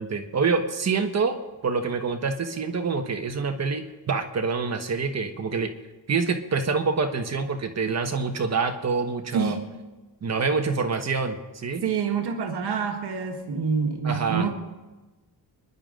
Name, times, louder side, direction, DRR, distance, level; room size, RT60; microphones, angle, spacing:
voice 1, 0.0-5.7 6.1-9.5 10.2-11.8 14.0-14.5, right 4 dB, 40° right, 5 dB, 1.4 m, -26 dB
voice 2, 11.8-14.5, right 6 dB, 80° right, 3 dB, 1.7 m, -26 dB
26.5 x 11.0 x 3.9 m, 1.2 s
wide cardioid pair, 150°, 39 cm